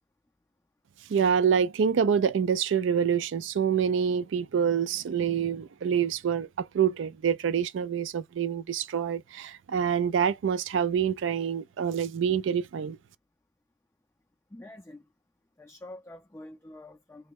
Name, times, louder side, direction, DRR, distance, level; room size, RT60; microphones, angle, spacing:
voice 1, 1.1-13.0, right 7 dB, 75° right, 0.3 m, -26 dB
voice 2, 14.5-15.0 15.6-17.3, left 1 dB, 10° left, 0.4 m, -46 dB
3.1 x 2.1 x 3.5 m
head